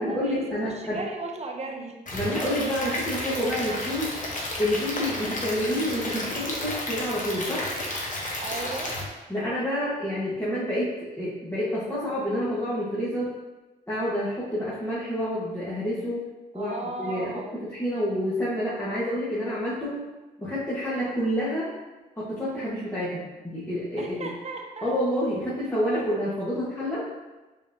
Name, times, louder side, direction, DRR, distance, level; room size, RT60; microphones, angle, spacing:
voice 1, 0.0-1.0 2.1-4.1 4.6-7.7 9.3-13.3 13.9-16.2 16.5-20.0 20.4-21.7 22.2-24.3 24.8-27.1, equal, 15° left, -10 dB, 1.4 m, -28 dB
voice 2, 0.6-2.0 8.4-8.9 16.5-17.6 24.0-24.9, right 2 dB, 35° right, 1 dB, 0.9 m, -35 dB
Stream / Liquid, 2.1-9.0, left 1 dB, 45° left, 1.2 m, -32 dB
4.7 x 3.7 x 2.8 m, 1.2 s
supercardioid pair, 55°, 18 cm